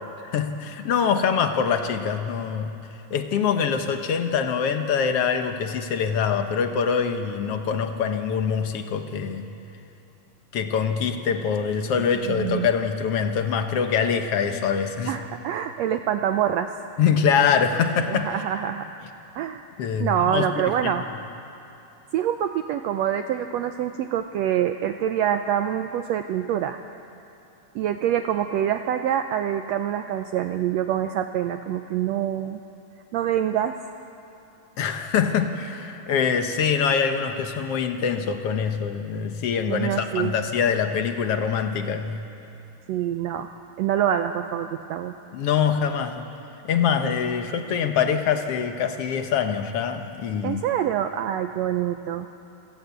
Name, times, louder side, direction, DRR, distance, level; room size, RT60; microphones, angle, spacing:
voice 1, 0.2-2.7 3.1-9.5 10.5-15.2 17.0-18.3 19.8-20.9 34.8-42.3 45.3-46.3 46.6-50.6, left 7 dB, 60° left, 7 dB, 1.7 m, -24 dB
voice 2, 12.3-12.7 15.1-16.8 18.1-18.9 19.3-19.6 20.0-21.0 22.1-26.8 27.7-32.6 33.1-33.8 39.7-40.3 42.9-43.5 43.8-45.1 50.4-52.3, right 10 dB, 80° right, 8 dB, 1.5 m, -25 dB
27.5 x 16.0 x 8.1 m, 2.9 s
omnidirectional pair, 3.7 m